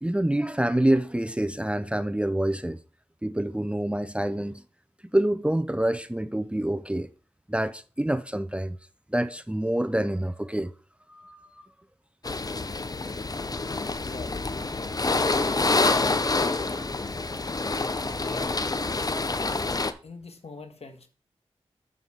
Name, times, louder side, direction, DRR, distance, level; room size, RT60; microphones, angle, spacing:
voice 1, 0.0-2.8 3.2-4.6 5.0-7.1 7.5-8.8 9.1-10.7 11.1-11.7 15.6-16.9 17.2-17.4 18.9-19.0, right 1 dB, 10° right, 0.5 m, -27 dB
sound 1, 12.2-19.9, left 3 dB, 35° left, 0.7 m, -27 dB
voice 2, 14.0-15.0 18.2-19.1 20.0-21.1, left 3 dB, 65° left, 1.5 m, -44 dB
7.4 x 6.9 x 3.7 m
cardioid pair, 40°, 11 cm